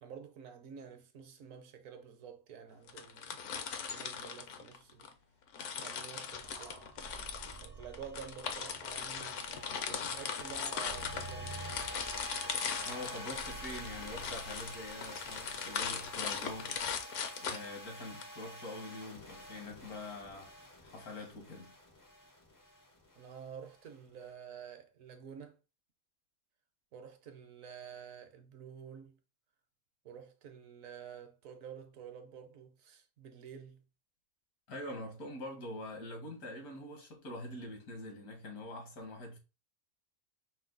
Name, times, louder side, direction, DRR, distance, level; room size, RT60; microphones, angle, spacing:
voice 1, 0.0-3.4 3.9-5.1 5.8-7.1 7.5-11.6 23.2-25.6 26.9-29.2 30.0-33.8, right 7 dB, 65° right, 1.0 m, -50 dB
sound 1, 2.9-5.1 5.5-18.2, left 6 dB, 65° left, 0.9 m, -39 dB
sound 2, 5.9-24.2, equal, 30° left, 0.3 m, -49 dB
sound 3, 6.3-17.0, right 2 dB, 45° right, 0.6 m, -52 dB
voice 2, 12.8-20.5 20.8-21.7 34.7-39.4, left 2 dB, 80° left, 1.9 m, -45 dB
5.3 x 2.2 x 3.8 m
omnidirectional pair, 1.6 m